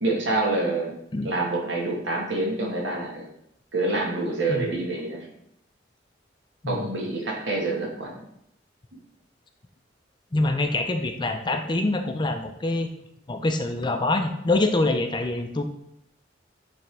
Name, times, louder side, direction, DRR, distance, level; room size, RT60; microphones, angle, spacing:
voice 1, 0.0-1.0 1.2-3.3 3.7-5.3 6.7-8.2, right 2 dB, 75° right, 0 dB, 1.4 m, -27 dB
voice 2, 10.3-12.9 13.3-15.6, left 2 dB, 25° left, 6 dB, 0.4 m, -25 dB
8.7 x 3.4 x 3.3 m, 0.77 s
head